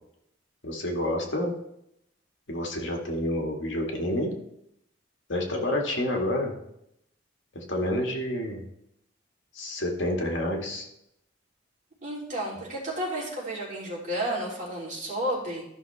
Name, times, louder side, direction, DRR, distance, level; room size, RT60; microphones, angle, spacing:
voice 1, 0.6-1.5 2.5-4.3 5.3-6.6 7.5-8.6 9.5-10.9, left 1 dB, 75° left, 0 dB, 2.1 m, -29 dB
voice 2, 12.0-15.6, right 1 dB, 45° right, -6 dB, 3.6 m, -32 dB
14.0 x 6.1 x 3.5 m, 0.78 s
head